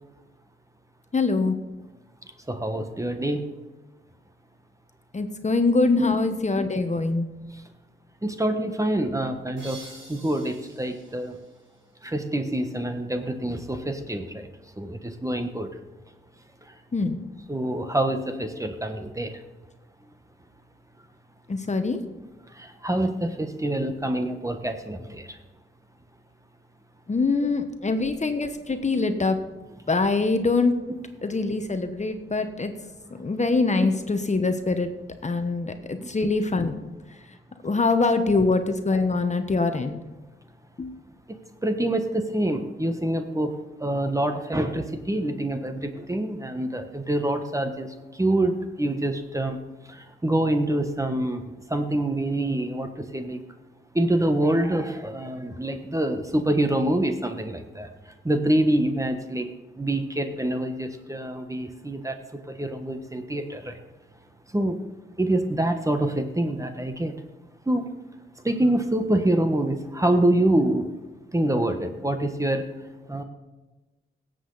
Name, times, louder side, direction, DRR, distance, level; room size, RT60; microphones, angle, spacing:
voice 1, 1.1-1.6 5.1-7.3 16.9-17.2 21.5-22.0 27.1-29.4 29.9-30.8 31.2-32.7 33.2-34.9 35.2-36.8 37.6-40.0 40.8-41.0, left 3 dB, 35° left, 7 dB, 1.1 m, -24 dB
voice 2, 2.5-3.5 6.0-6.1 7.5-7.6 8.2-11.4 12.0-14.5 14.8-15.7 17.5-19.4 22.5-25.4 27.8-27.9 33.8-33.9 36.0-36.1 41.3-43.5 43.8-49.6 49.9-51.4 51.7-53.4 53.9-59.5 59.8-62.2 62.5-63.8 64.5-64.8 65.2-67.1 67.6-67.9 68.4-70.9 71.3-72.6 73.1-73.2, right 1 dB, 15° right, 7 dB, 1.3 m, -26 dB
sound 1, 9.6-12.3, right 2 dB, 65° right, 3.9 m, -48 dB
17.0 x 7.8 x 4.1 m, 1.2 s
cardioid pair, 70°, 21 cm